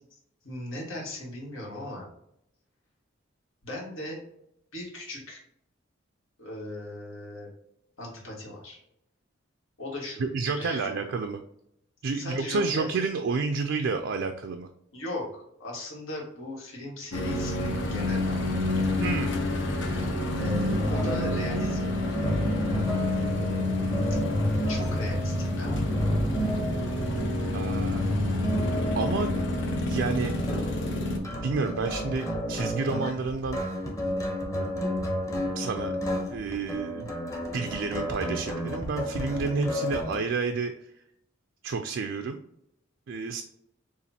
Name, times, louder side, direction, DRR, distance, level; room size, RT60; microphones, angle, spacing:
voice 1, 0.4-2.1 3.6-4.2 4.7-5.4 6.4-7.5 8.0-8.8 9.8-10.3 10.5-10.9 12.1-12.9 14.9-19.0 20.4-21.9 24.7-26.0, left 1 dB, 85° left, -3 dB, 1.8 m, -38 dB
voice 2, 10.2-11.4 12.0-14.7 19.0-19.4 27.5-28.1 28.9-29.3 29.9-30.3 31.4-33.6 35.6-35.9 36.3-37.1 37.5-40.7 41.6-42.4 43.1-43.4, right 4 dB, 65° right, 6 dB, 0.4 m, -30 dB
sound 1, 17.1-31.2, left 1 dB, 65° left, 0.8 m, -29 dB
sound 2, 20.4-40.2, equal, 15° left, 0.8 m, -31 dB
6.9 x 2.5 x 2.8 m, 0.76 s
head